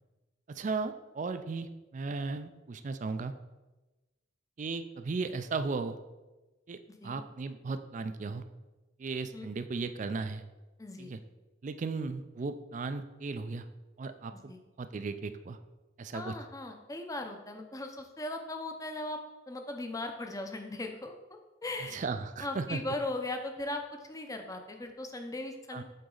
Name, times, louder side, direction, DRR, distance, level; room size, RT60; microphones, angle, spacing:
voice 1, 0.5-3.3 4.6-6.0 6.7-8.4 9.0-10.4 11.0-11.2 11.6-13.7 14.0-14.5 14.8-15.6 16.0-16.4 21.9-22.8 25.7-25.8, right 4 dB, 40° right, 11 dB, 0.3 m, -36 dB
voice 2, 10.8-11.1 14.5-14.6 16.1-19.2 19.5-21.1 21.6-22.0 22.4-25.8, left 2 dB, 15° left, 5 dB, 0.6 m, -38 dB
7.8 x 4.1 x 3.8 m, 1.1 s
head